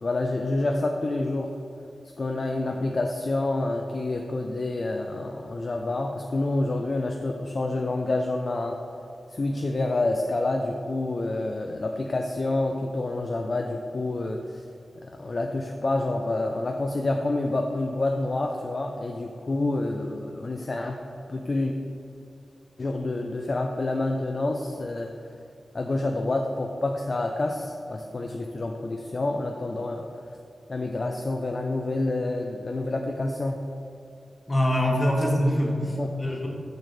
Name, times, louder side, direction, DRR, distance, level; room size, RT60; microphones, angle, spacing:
voice 1, 0.0-1.5 2.2-8.8 9.3-14.6 15.0-21.0 21.3-21.7 22.8-25.1 25.7-30.1 30.7-33.6 36.0-36.1, left 2 dB, 35° left, 2 dB, 0.3 m, -28 dB
voice 2, 34.5-36.5, equal, 20° left, 0 dB, 0.9 m, -24 dB
6.5 x 6.3 x 3.2 m, 2.6 s
wide cardioid pair, 145°, 0 cm